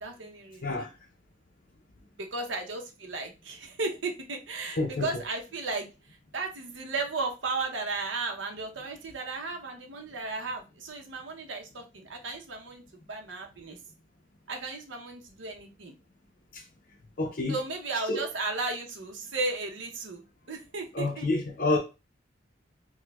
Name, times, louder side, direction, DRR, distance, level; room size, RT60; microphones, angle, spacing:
voice 1, 0.0-0.9 2.2-5.9 6.3-12.8 13.1-13.8 14.5-15.9 17.5-21.3, right 3 dB, 85° right, 0.8 m, -35 dB
voice 2, 4.8-5.1 16.5-16.6 17.2-17.6 18.1-18.2 20.9-21.8, left 2 dB, 50° left, 0.5 m, -28 dB
4.5 x 2.1 x 2.3 m
head